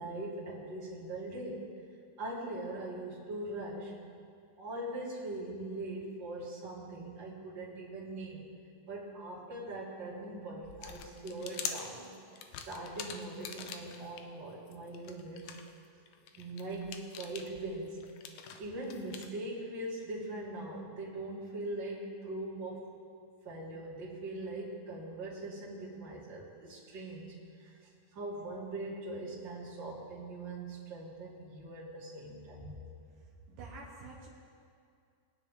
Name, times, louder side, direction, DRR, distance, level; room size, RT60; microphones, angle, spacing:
voice 1, 0.0-1.7 2.2-4.0 4.6-8.5 8.9-12.1 12.7-15.5 16.4-18.1 18.6-22.9 23.4-32.9, right 2 dB, 35° right, -6 dB, 2.8 m, -41 dB
sound 1, 10.6-14.2 14.7-19.3, left 7 dB, 75° left, 1.9 m, -44 dB
voice 2, 33.1-34.3, right 3 dB, 75° right, -2 dB, 2.8 m, -48 dB
22.0 x 9.6 x 3.7 m, 2.3 s
omnidirectional pair, 4.1 m